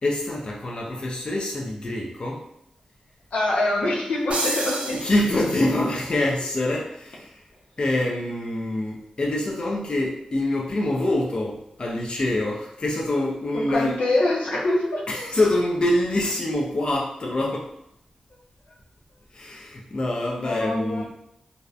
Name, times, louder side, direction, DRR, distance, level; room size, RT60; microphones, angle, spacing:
voice 1, 0.0-2.4 4.9-7.5 7.8-14.0 15.1-17.7 19.3-21.1, left 1 dB, 45° left, -2 dB, 0.4 m, -25 dB
voice 2, 3.3-4.9 13.5-15.1 20.4-21.0, left 2 dB, 85° left, -3 dB, 0.6 m, -24 dB
sound 1, 4.3-5.9, right 2 dB, 65° right, 0.5 m, -30 dB
2.6 x 2.1 x 2.3 m, 0.79 s
wide cardioid pair, 80°, 2 cm